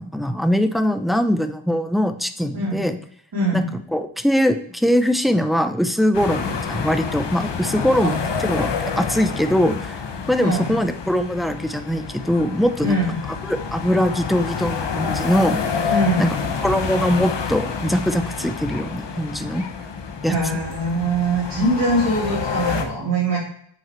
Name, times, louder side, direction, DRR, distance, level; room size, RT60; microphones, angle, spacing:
voice 1, 0.0-3.0 3.5-3.6 3.9-8.2 8.4-12.9 13.5-15.9 16.2-16.3 16.6-19.7 20.2-20.4, equal, ahead, 8 dB, 0.6 m, -21 dB
voice 2, 3.3-3.7 8.0-8.1 10.4-10.7 12.8-13.2 15.9-16.3 20.3-23.4, right 1 dB, 45° right, -7 dB, 3.6 m, -22 dB
sound 1, 6.1-22.8, left 5 dB, 55° left, 1.2 m, -28 dB
7.8 x 7.7 x 4.5 m, 0.62 s
wide cardioid pair, 120°, 50 cm